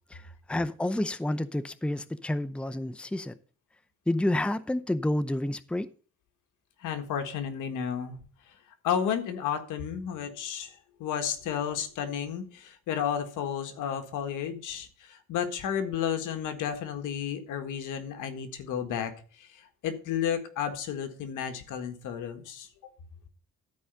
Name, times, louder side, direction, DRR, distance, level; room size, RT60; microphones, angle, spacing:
voice 1, 0.5-3.3 4.1-5.9, left 1 dB, 5° left, 0.6 m, -29 dB
voice 2, 6.8-8.1 8.8-19.1 19.4-22.7, left 8 dB, 85° left, 1.6 m, -32 dB
12.5 x 4.9 x 6.8 m
cardioid pair, 90°, 30 cm